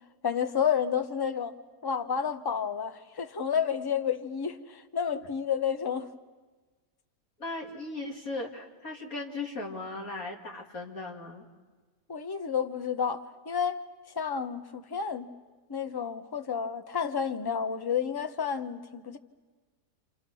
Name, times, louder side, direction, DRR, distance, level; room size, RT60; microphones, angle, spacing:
voice 1, 0.2-1.5 1.8-6.1 12.1-13.8 14.2-15.3 15.7-19.2, left 7 dB, 20° left, 0.7 m, -30 dB
voice 2, 7.4-11.4, left 2 dB, 60° left, 3.3 m, -37 dB
29.0 x 26.5 x 6.3 m
omnidirectional pair, 1.7 m